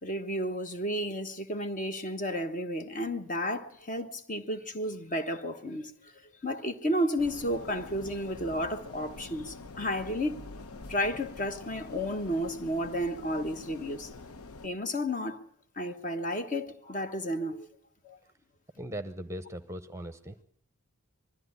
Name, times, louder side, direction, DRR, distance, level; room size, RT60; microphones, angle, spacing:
voice 1, 0.0-5.9 6.4-10.4 10.9-14.1 14.6-15.4 15.8-17.7 18.0-18.2, equal, 35° left, 1.2 m, -32 dB
sound 1, 7.2-14.7, left 3 dB, 85° left, 0.9 m, -46 dB
voice 2, 18.8-20.4, right 1 dB, 15° right, 0.8 m, -39 dB
21.0 x 13.5 x 9.6 m
head